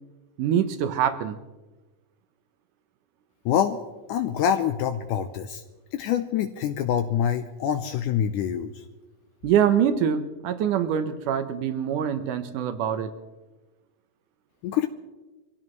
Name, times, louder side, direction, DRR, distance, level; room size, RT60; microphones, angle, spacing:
voice 1, 0.4-1.4 9.4-13.1, right 9 dB, 75° right, 9 dB, 2.5 m, -24 dB
voice 2, 3.5-3.8 4.1-5.6 5.9-8.8 14.6-14.9, left 9 dB, 80° left, 7 dB, 2.1 m, -25 dB
25.0 x 16.5 x 3.1 m, 1.1 s
omnidirectional pair, 3.9 m